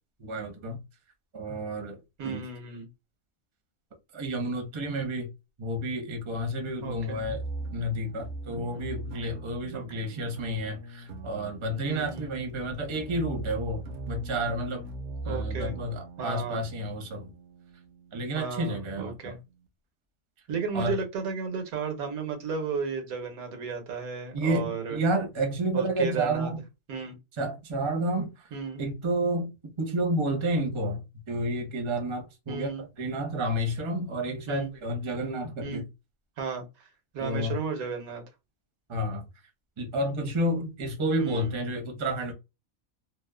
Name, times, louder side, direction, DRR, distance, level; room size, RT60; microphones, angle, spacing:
voice 1, 0.2-0.8 1.3-2.4 4.1-5.3 5.6-7.4 7.7-14.9 15.2-17.3 18.1-19.4 20.7-21.0 24.3-26.6 27.4-28.5 28.8-35.8 37.2-37.6 38.9-39.3 39.8-42.3, right 1 dB, 30° right, 0.5 m, -30 dB
voice 2, 2.2-2.9 6.8-7.2 8.6-8.8 9.7-10.0 11.8-12.4 15.2-15.8 16.2-16.7 18.3-19.4 20.5-25.0 25.7-26.5 26.9-27.1 28.5-28.8 32.5-32.8 34.5-34.7 35.6-35.8 36.4-36.9 37.1-38.2 41.2-41.5, right 5 dB, 85° right, 1.3 m, -34 dB
sound 1, 6.8-19.7, right 2 dB, 65° right, 0.8 m, -41 dB
2.8 x 2.1 x 2.2 m
omnidirectional pair, 1.5 m